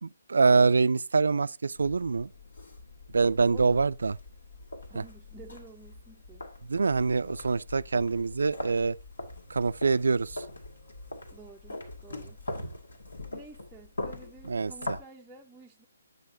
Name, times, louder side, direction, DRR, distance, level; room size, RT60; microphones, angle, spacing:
voice 1, 0.0-2.3 3.1-4.1 6.7-9.0 9.5-10.4 14.5-14.7, right 4 dB, 60° right, 0.3 m, -25 dB
sound 1, 1.8-15.0, left 2 dB, 70° left, 2.0 m, -42 dB
voice 2, 4.9-6.4 11.3-12.4 13.3-15.9, right 3 dB, 5° right, 0.5 m, -51 dB
9.3 x 8.0 x 2.6 m
figure-of-eight pair, 140°, 0 cm